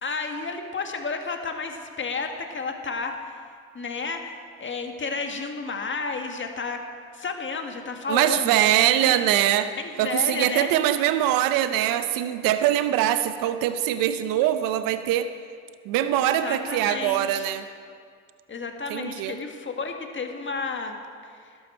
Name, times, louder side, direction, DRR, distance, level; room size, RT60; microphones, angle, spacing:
voice 1, 0.0-3.4 3.7-6.8 7.1-8.6 9.0-9.2 10.0-10.7 16.2-17.5 18.5-21.0, left 4 dB, 35° left, 4 dB, 1.7 m, -32 dB
voice 2, 8.1-9.7 10.0-15.3 15.9-17.6 18.9-19.4, right 12 dB, 70° right, 10 dB, 0.7 m, -23 dB
12.5 x 12.0 x 4.4 m, 2.2 s
hypercardioid pair, 60°, 34 cm